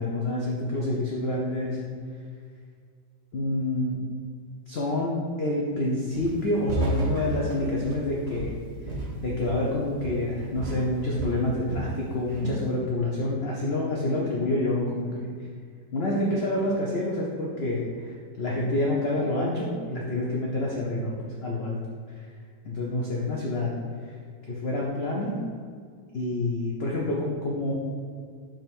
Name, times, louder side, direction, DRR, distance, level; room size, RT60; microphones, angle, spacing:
voice 1, 0.0-1.8 3.3-4.0 4.7-8.6 8.8-8.9 9.2-15.3 15.9-21.1 21.4-21.8 22.1-22.3 22.6-23.8 24.0-24.1 24.5-25.3 26.1-27.7, left 1 dB, 60° left, -4 dB, 0.6 m, -28 dB
Walk footsteps, 6.2-6.4 6.7-9.7 10.0-10.3 10.6-11.9 12.3-12.7, right 2 dB, 40° right, 1.1 m, -32 dB
5.1 x 3.7 x 5.2 m, 2.1 s
omnidirectional pair, 2.0 m